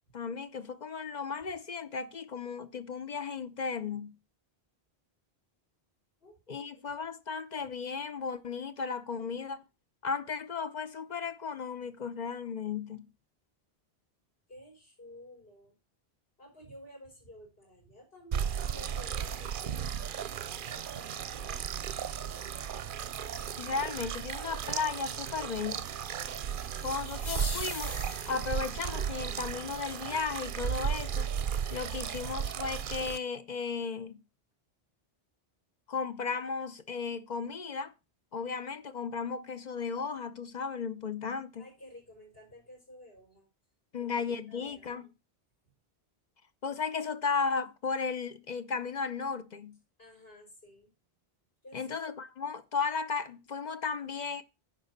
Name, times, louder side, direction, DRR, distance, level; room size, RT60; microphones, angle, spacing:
voice 1, 0.1-4.2 6.5-9.6 10.0-13.1 23.6-25.9 26.8-27.9 28.3-31.3 31.7-34.2 35.9-37.9 38.3-41.7 43.9-45.1 46.6-49.8 51.7-54.4, left 5 dB, 50° left, 0.7 m, -35 dB
voice 2, 6.2-6.8 14.5-15.7 16.4-19.8 20.7-21.6 41.6-43.5 44.0-45.1 50.0-50.9 51.6-52.0, left 1 dB, 65° left, 5.5 m, -53 dB
sound 1, 18.3-33.2, right 8 dB, 60° right, 0.7 m, -35 dB
sound 2, 26.5-28.7, left 2 dB, 25° left, 1.1 m, -41 dB
10.0 x 4.1 x 6.5 m
omnidirectional pair, 1.1 m